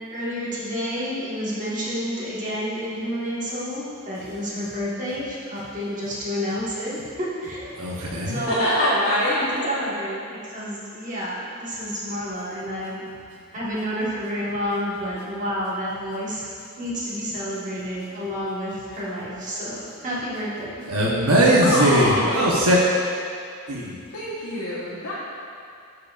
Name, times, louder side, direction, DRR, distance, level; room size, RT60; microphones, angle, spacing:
voice 1, 0.1-7.7 8.3-13.1 13.5-16.4 16.8-20.8, equal, 35° right, -8 dB, 1.4 m, -29 dB
voice 2, 7.8-8.4 20.9-22.8 23.7-23.9, right 1 dB, 80° right, -5 dB, 0.9 m, -19 dB
voice 3, 8.3-9.9 21.6-22.4 24.1-25.1, left 1 dB, 90° left, -10 dB, 1.1 m, -25 dB
12.0 x 4.8 x 2.4 m, 2.4 s
head